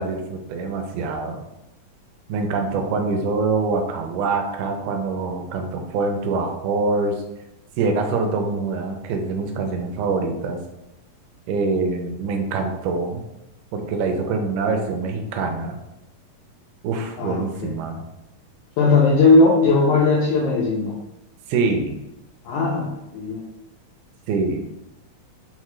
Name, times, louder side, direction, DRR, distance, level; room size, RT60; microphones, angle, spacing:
voice 1, 0.0-1.4 2.3-7.1 7.8-10.6 11.5-13.2 13.7-15.8 16.8-18.0 21.5-22.0 24.3-24.6, right 4 dB, 80° right, 3 dB, 1.8 m, -24 dB
voice 2, 17.2-17.7 18.8-21.0 22.5-23.4, left 3 dB, 85° left, -3 dB, 1.7 m, -18 dB
5.5 x 2.2 x 3.0 m, 0.90 s
omnidirectional pair, 4.1 m